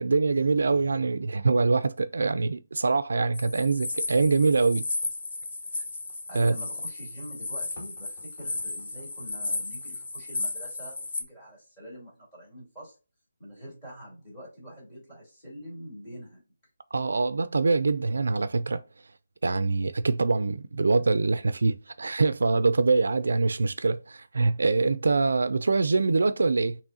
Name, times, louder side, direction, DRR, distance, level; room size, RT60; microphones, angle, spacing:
voice 1, 0.0-4.8 6.3-6.6 16.9-18.8 19.4-26.8, right 3 dB, 60° right, 0.3 m, -24 dB
sound 1, 3.3-11.2, left 3 dB, 35° left, 0.8 m, -34 dB
voice 2, 6.3-12.9 13.4-16.4, equal, 15° left, 2.4 m, -45 dB
6.1 x 3.0 x 2.7 m
hypercardioid pair, 180°, 0 cm